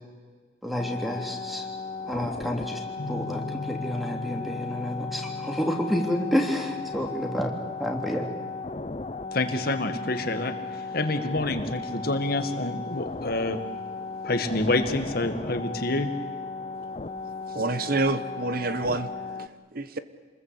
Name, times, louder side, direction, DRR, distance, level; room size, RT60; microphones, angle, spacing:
voice 1, 0.6-1.7 2.1-2.8 3.1-7.5 7.8-8.3, equal, ahead, 3 dB, 3.2 m, -29 dB
sound 1, 0.8-19.5, left 4 dB, 35° left, 0.8 m, -36 dB
sound 2, 3.0-11.7, left 3 dB, 80° left, 2.4 m, -42 dB
voice 2, 9.3-13.6 14.2-16.1, left 2 dB, 55° left, 8 dB, 2.0 m, -27 dB
voice 3, 17.5-20.0, right 2 dB, 50° right, 13 dB, 1.0 m, -28 dB
28.0 x 21.0 x 8.5 m, 1.5 s
head